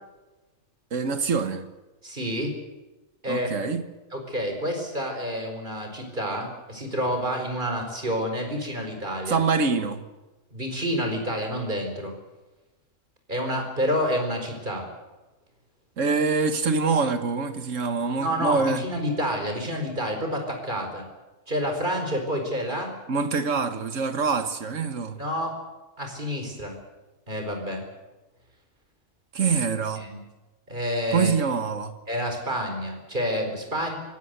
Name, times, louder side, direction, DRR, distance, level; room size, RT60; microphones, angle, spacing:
voice 1, 0.9-1.6 3.3-3.9 9.3-10.0 16.0-18.8 23.1-25.2 29.3-30.1 31.1-32.0, right 5 dB, 70° right, 1.8 m, -25 dB
voice 2, 2.0-2.6 3.2-3.5 4.1-9.4 10.5-12.1 13.3-14.9 18.2-21.0 21.5-22.9 25.2-25.6 26.0-26.8 27.3-27.8 30.0-30.2 30.7-31.3 32.1-34.0, equal, 35° right, 4.8 m, -28 dB
24.0 x 17.0 x 8.1 m
omnidirectional pair, 1.4 m